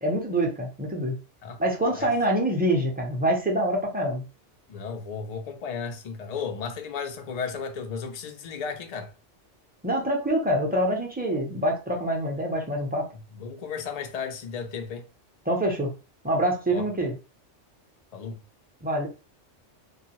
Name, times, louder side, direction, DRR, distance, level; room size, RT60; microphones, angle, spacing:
voice 1, 0.0-1.2 1.6-4.2 9.8-13.1 15.5-15.9 16.2-17.1 18.8-19.1, right 1 dB, 10° right, 0.4 m, -25 dB
voice 2, 4.7-9.1 13.4-15.0 16.7-16.9 18.1-18.4, left 6 dB, 90° left, 0.3 m, -34 dB
2.6 x 2.3 x 2.9 m
omnidirectional pair, 1.3 m